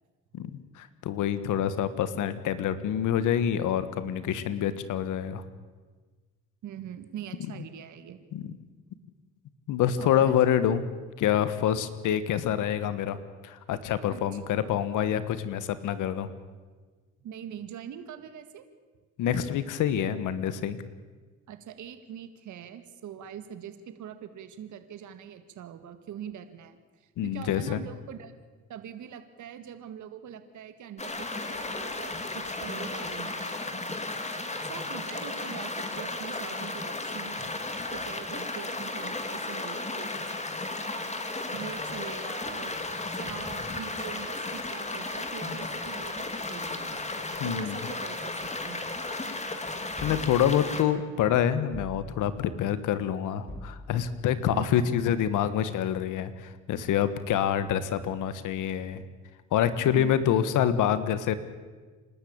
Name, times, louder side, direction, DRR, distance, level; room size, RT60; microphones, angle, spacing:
voice 1, 0.3-5.4 8.3-8.5 9.7-10.8 11.2-13.2 13.4-16.3 19.2-20.8 27.2-27.8 47.4-47.8 49.4-49.7 50.0-59.0 59.5-61.3, left 9 dB, 85° left, 13 dB, 1.5 m, -27 dB
voice 2, 6.6-8.2 10.0-10.4 14.1-14.2 14.5-14.8 17.2-18.6 21.5-28.3 28.7-33.8 34.1-40.5 41.5-47.0 47.4-48.9 54.5-54.8 59.8-60.2, right 9 dB, 75° right, 10 dB, 1.9 m, -43 dB
sound 1, 31.0-50.8, left 2 dB, 20° left, 2.6 m, -34 dB
sound 2, 51.7-52.5 53.5-54.2, left 1 dB, 5° left, 1.5 m, -43 dB
28.0 x 12.5 x 8.7 m, 1.4 s
cardioid pair, 90°, 30 cm